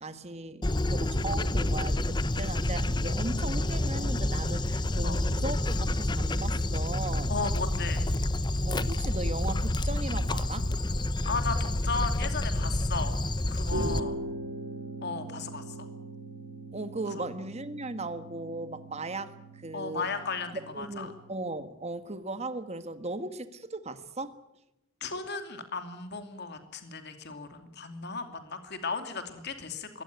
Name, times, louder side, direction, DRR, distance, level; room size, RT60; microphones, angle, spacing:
voice 1, 0.0-7.3 8.6-10.7 16.7-20.1 20.7-24.4, right 2 dB, 30° right, 11 dB, 1.5 m, -37 dB
Dog, 0.6-14.0, left 1 dB, 20° left, 0.8 m, -28 dB
voice 2, 7.3-8.1 11.2-13.2 13.5-14.2 15.0-15.8 17.2-17.3 19.7-21.1 25.0-30.0, left 4 dB, 55° left, 7 dB, 2.6 m, -35 dB
sound 1, 13.7-21.4, right 2 dB, 75° right, 3.2 m, -40 dB
22.5 x 17.5 x 9.5 m, 0.90 s
head